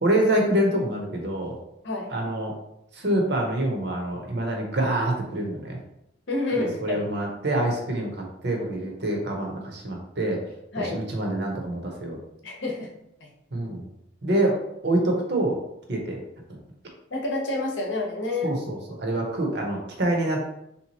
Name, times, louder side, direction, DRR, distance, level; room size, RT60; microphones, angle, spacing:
voice 1, 0.0-1.6 2.1-2.5 2.9-5.8 6.6-10.4 10.8-12.2 13.5-13.9 14.2-15.6 15.9-16.2 16.5-16.6 18.4-20.4, right 1 dB, 55° right, 1 dB, 0.8 m, -26 dB
voice 2, 6.3-7.0 10.7-11.0 12.4-12.9 13.2-13.3 17.1-18.6, left 2 dB, 65° left, -1 dB, 0.8 m, -28 dB
3.5 x 2.8 x 2.9 m, 0.79 s
head